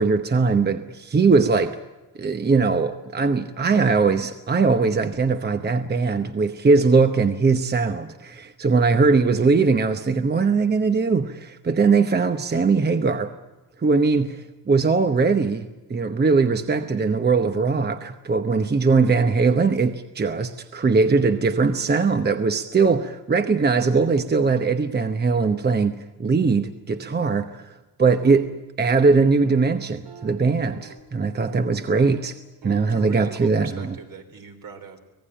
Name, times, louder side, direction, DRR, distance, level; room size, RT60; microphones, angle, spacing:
voice 1, 0.0-1.8 2.2-13.3 13.8-27.7 28.0-28.5 28.8-32.3 32.6-33.9, right 4 dB, 25° right, 8 dB, 0.9 m, -20 dB
sound 1, 28.2-28.5 28.8-29.1 29.4-29.7 30.0-31.0 31.3-31.7 32.0-32.3 32.6-33.2, right 6 dB, 85° right, 3.1 m, -45 dB
voice 2, 32.9-35.1, right 5 dB, 65° right, 5 dB, 3.9 m, -41 dB
25.5 x 18.0 x 8.9 m, 1.1 s
cardioid pair, 125°, 36 cm